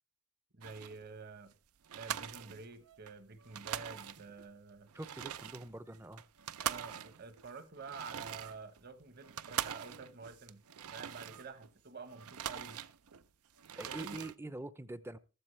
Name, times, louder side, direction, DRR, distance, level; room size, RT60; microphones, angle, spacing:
voice 1, 0.5-1.5 1.9-4.9 6.6-10.6 10.9-12.8 13.8-14.2, right 4 dB, 45° right, 1.1 m, -49 dB
sound 1, 0.6-1.0 1.5-1.6 1.8-3.1 3.4-4.5 4.9-11.7 12.1-13.3 13.6-14.3, right 9 dB, 85° right, 0.6 m, -43 dB
voice 2, 4.9-6.2 13.8-15.2, right 2 dB, 10° right, 0.5 m, -44 dB
15.0 x 13.0 x 3.2 m
head